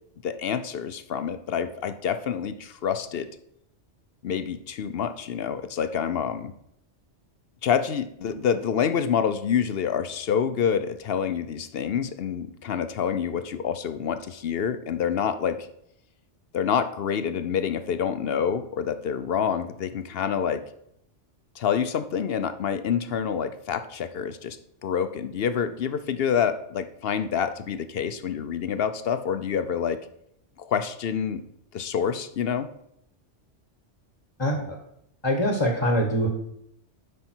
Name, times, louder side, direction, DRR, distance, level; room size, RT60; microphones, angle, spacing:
voice 1, 0.2-3.3 4.2-6.5 7.6-15.7 16.5-20.6 21.6-30.0 30.6-31.4 31.7-32.7, left 7 dB, 60° left, 11 dB, 0.8 m, -27 dB
voice 2, 34.4-34.8 35.2-36.3, equal, 25° left, 3 dB, 1.1 m, -23 dB
11.5 x 5.5 x 4.4 m, 0.75 s
omnidirectional pair, 1.2 m